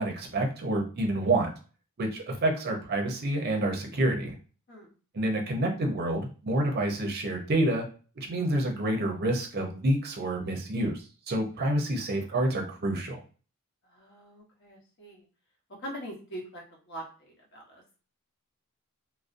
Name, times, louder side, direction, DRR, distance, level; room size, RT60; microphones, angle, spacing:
voice 1, 0.0-1.5 2.0-4.4 5.1-7.9 8.2-13.2, right 1 dB, 45° right, 2 dB, 0.5 m, -28 dB
voice 2, 13.8-15.2 15.8-18.0, equal, 50° left, 0 dB, 0.9 m, -43 dB
2.5 x 2.0 x 2.5 m, 0.37 s
head